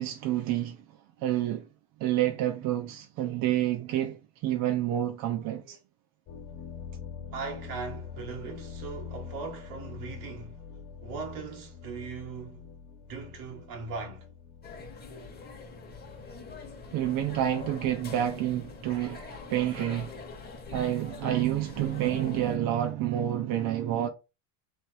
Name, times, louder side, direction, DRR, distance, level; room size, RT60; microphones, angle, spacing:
voice 1, 0.0-1.7 2.0-5.8 16.9-20.2 20.7-24.1, right 12 dB, 45° right, 0.7 m, -29 dB
sound 1, 6.3-18.6, left 6 dB, 40° left, 1.3 m, -45 dB
voice 2, 7.3-10.6 11.0-12.7 13.1-14.3, right 5 dB, 80° right, 1.5 m, -39 dB
sound 2, 14.6-22.6, left 3 dB, 20° left, 1.0 m, -44 dB
3.2 x 3.1 x 4.7 m
cardioid pair, 140°, 47 cm